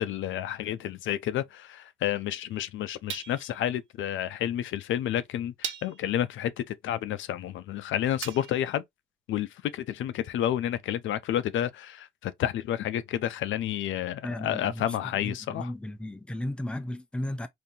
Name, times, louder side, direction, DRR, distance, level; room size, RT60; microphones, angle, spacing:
voice 1, 0.0-8.8 9.3-15.7, left 11 dB, 75° left, 0.6 m, -30 dB
sound 1, 0.5-0.7 3.1-3.7 4.7-4.8 5.6-6.2 8.2-8.7, right 8 dB, 75° right, 0.6 m, -39 dB
voice 2, 14.2-14.9 15.2-17.5, left 1 dB, 5° left, 0.5 m, -34 dB
3.8 x 2.7 x 2.7 m
cardioid pair, 90°, 20 cm